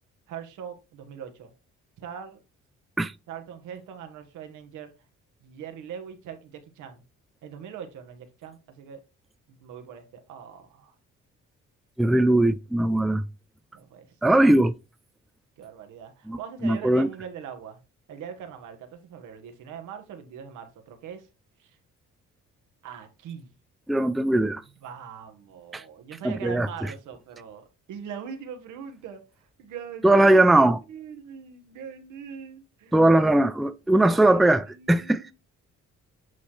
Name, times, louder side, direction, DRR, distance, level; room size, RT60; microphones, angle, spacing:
voice 1, 0.3-1.5 2.0-2.4 3.3-4.9 5.4-7.0 7.4-9.0 9.5-10.9 13.7-14.4 15.6-17.8 18.1-21.3 21.6-21.8 22.8-23.5 24.8-30.4 30.9-33.1 34.0-35.3, right 7 dB, 85° right, 1.4 m, -41 dB
voice 2, 12.0-13.2 14.2-14.7 16.3-17.1 23.9-24.6 25.7-25.8 26.2-26.7 30.0-30.8 32.9-35.2, right 1 dB, ahead, 0.4 m, -20 dB
8.1 x 3.2 x 4.3 m
cardioid pair, 90°, 30 cm